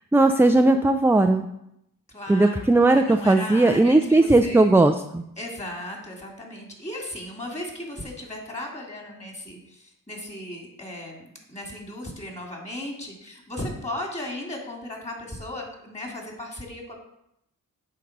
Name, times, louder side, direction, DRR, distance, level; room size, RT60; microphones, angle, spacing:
voice 1, 0.1-1.4 2.3-5.2, right 2 dB, 5° right, 6 dB, 0.4 m, -18 dB
voice 2, 2.1-2.6 2.9-4.7 5.4-17.0, left 1 dB, 20° left, 0 dB, 2.8 m, -36 dB
8.6 x 4.0 x 6.1 m, 0.80 s
cardioid pair, 65°, 34 cm